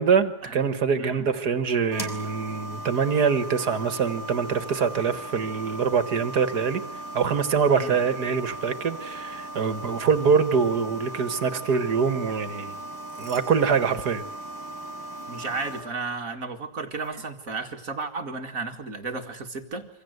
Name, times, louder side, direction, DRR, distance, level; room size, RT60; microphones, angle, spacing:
voice 1, 0.0-6.8 7.1-12.8 13.2-14.2, right 6 dB, 75° right, 11 dB, 2.2 m, -24 dB
sound 1, 1.9-15.8, right 1 dB, 10° left, 5.9 m, -38 dB
sound 2, 12.8-14.7 15.0-15.2 16.9-17.1, right 1 dB, 20° right, 7.8 m, -53 dB
voice 2, 15.3-19.9, right 3 dB, 55° right, 6 dB, 2.4 m, -33 dB
27.5 x 25.0 x 8.1 m, 0.69 s
omnidirectional pair, 1.7 m